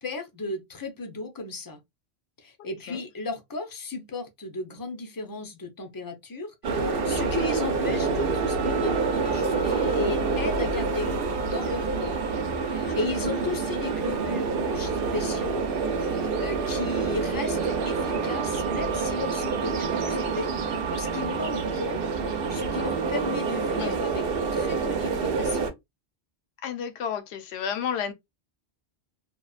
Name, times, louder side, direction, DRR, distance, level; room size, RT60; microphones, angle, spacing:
voice 1, 0.0-1.8 2.4-15.6 16.0-22.0 22.5-24.3 24.5-25.7, left 3 dB, 30° left, 0.4 m, -35 dB
sound 1, 6.6-25.7, right 4 dB, 65° right, 0.7 m, -27 dB
voice 2, 12.8-13.3 23.8-24.0 26.6-28.1, left 7 dB, 75° left, 0.8 m, -32 dB
2.8 x 2.2 x 2.4 m
omnidirectional pair, 1.1 m